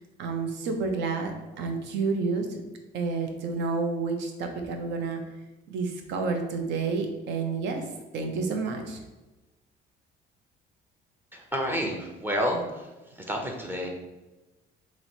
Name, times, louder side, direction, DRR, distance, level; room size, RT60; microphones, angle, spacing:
voice 1, 0.2-2.6 2.9-5.2 5.7-7.8 8.1-9.0, right 4 dB, 75° right, 4 dB, 0.7 m, -30 dB
voice 2, 11.3-13.9, equal, 10° right, 1 dB, 0.5 m, -30 dB
3.0 x 2.9 x 4.3 m, 1.1 s
cardioid pair, 155°, 19 cm